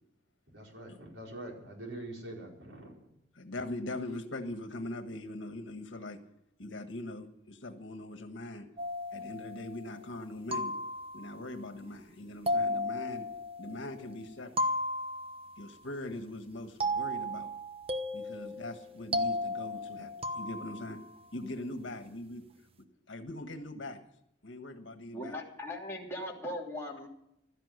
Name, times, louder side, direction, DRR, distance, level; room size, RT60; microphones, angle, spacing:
voice 1, 0.5-3.1, right 1 dB, 85° right, 0 dB, 4.6 m, -44 dB
voice 2, 3.4-6.2 6.6-8.7 9.1-10.7 11.1-13.3 13.6-14.6 15.6-17.5 18.1-21.0 21.3-22.5 23.1-24.0 24.4-25.3, left 1 dB, 80° left, 6 dB, 1.5 m, -41 dB
sound 1, 8.8-9.9 10.5-11.5 12.5-14.0 14.6-15.7 16.8-21.1, left 1 dB, 30° right, 1.0 m, -35 dB
voice 3, 25.1-27.1, left 1 dB, 15° left, -3 dB, 3.0 m, -39 dB
16.0 x 12.5 x 6.7 m, 0.80 s
head